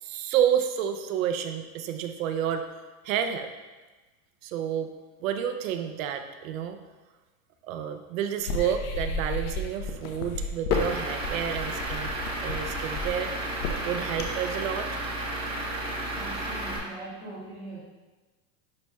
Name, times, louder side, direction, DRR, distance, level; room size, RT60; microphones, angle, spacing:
voice 1, 0.0-2.7 3.0-3.5 4.4-4.9 5.2-6.8 7.6-12.2 12.4-13.3 13.8-15.0, right 9 dB, 60° right, 7 dB, 0.7 m, -30 dB
sound 1, 8.4-14.5, left 3 dB, 70° left, 1.0 m, -32 dB
Truck / Idling, 10.7-16.8, right 1 dB, 10° right, 0.8 m, -33 dB
voice 2, 16.1-17.8, right 2 dB, 10° left, -11 dB, 0.3 m, -41 dB
10.5 x 4.2 x 2.3 m, 1.2 s
supercardioid pair, 170°, 45 cm